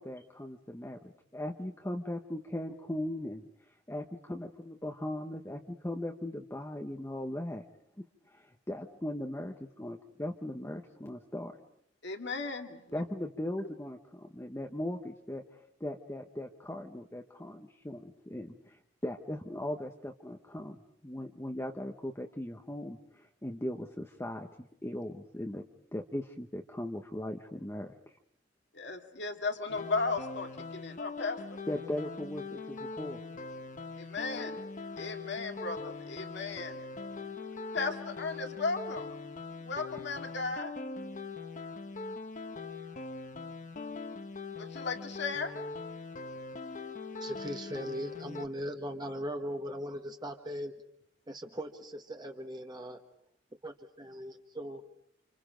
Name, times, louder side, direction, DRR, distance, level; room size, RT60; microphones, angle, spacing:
voice 1, 0.0-3.4 3.9-7.6 8.3-11.5 12.9-20.8 21.0-25.6 25.9-27.9 31.7-33.2, left 1 dB, 15° left, 3 dB, 1.0 m, -39 dB
voice 2, 12.0-13.0 28.7-31.4 34.0-34.6 35.0-36.8 37.7-39.2 39.6-40.7 44.6-45.5, left 3 dB, 60° left, 5 dB, 2.4 m, -35 dB
sound 1, 29.7-48.5, left 4 dB, 40° left, 1.1 m, -42 dB
voice 3, 47.2-50.7 51.3-53.0 53.6-54.8, equal, 20° right, 3 dB, 1.5 m, -39 dB
30.0 x 27.0 x 5.2 m, 0.72 s
head